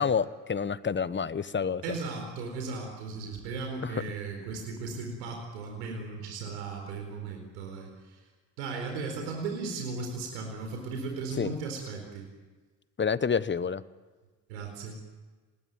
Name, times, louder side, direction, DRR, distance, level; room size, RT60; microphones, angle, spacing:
voice 1, 0.0-1.8 3.8-4.0 11.4-11.5 13.0-13.8, left 6 dB, 20° left, 17 dB, 1.1 m, -28 dB
voice 2, 1.8-8.2 8.6-12.3 14.5-15.0, right 4 dB, 80° right, 3 dB, 4.5 m, -36 dB
26.0 x 20.0 x 9.3 m, 1.3 s
hypercardioid pair, 65°, 49 cm